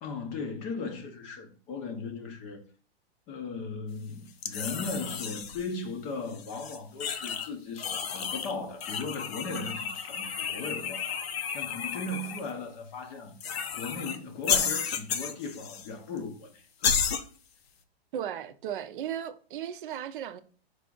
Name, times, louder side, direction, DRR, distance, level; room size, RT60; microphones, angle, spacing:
voice 1, 0.0-2.6 3.3-11.3 11.5-13.3 13.7-16.6, left 3 dB, 25° left, 0.5 m, -37 dB
sound 1, 4.4-5.7 6.3-7.5 7.8-8.5 8.8-12.4 13.4-14.2 14.4-15.9 16.2-16.3 16.8-17.2, left 7 dB, 70° left, 0.7 m, -32 dB
voice 2, 18.1-20.4, right 9 dB, 55° right, 0.5 m, -36 dB
4.6 x 2.4 x 3.8 m
hypercardioid pair, 140°, 32 cm